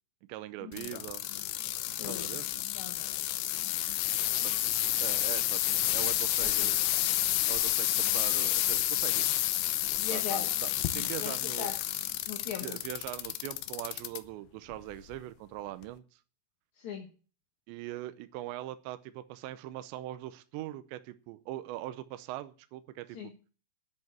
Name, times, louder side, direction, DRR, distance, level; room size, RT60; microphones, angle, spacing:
voice 1, 0.3-1.3 2.0-2.5 4.4-4.7 5.0-6.8 7.5-9.3 10.1-11.7 12.6-16.2 17.7-23.2, right 15 dB, 80° right, 11 dB, 2.9 m, -41 dB
sound 1, 0.7-14.2 14.7-15.2 15.8-15.9, left 14 dB, 75° left, 2.6 m, -30 dB
voice 2, 2.0-2.4 2.7-3.3 3.6-3.8 6.4-6.7 10.0-10.5 11.2-11.8 12.3-12.8 16.8-17.1 23.1-23.3, left 8 dB, 55° left, 1 dB, 2.2 m, -40 dB
11.0 x 7.8 x 8.7 m, 0.38 s
omnidirectional pair, 5.2 m